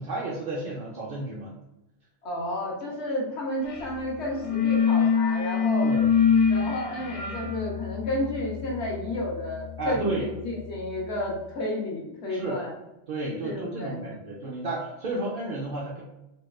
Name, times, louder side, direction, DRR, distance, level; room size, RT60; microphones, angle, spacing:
voice 1, 0.0-1.5 5.8-6.0 9.8-10.3 12.3-12.6 13.1-16.0, right 2 dB, 50° right, -5 dB, 0.7 m, -32 dB
voice 2, 2.2-5.9 6.5-12.7 13.4-14.2, left 1 dB, 80° left, -2 dB, 1.2 m, -31 dB
sound 1, 3.7-3.9 4.2-10.8, left 6 dB, 55° left, 0.7 m, -26 dB
4.0 x 2.3 x 2.4 m, 0.94 s
omnidirectional pair, 1.2 m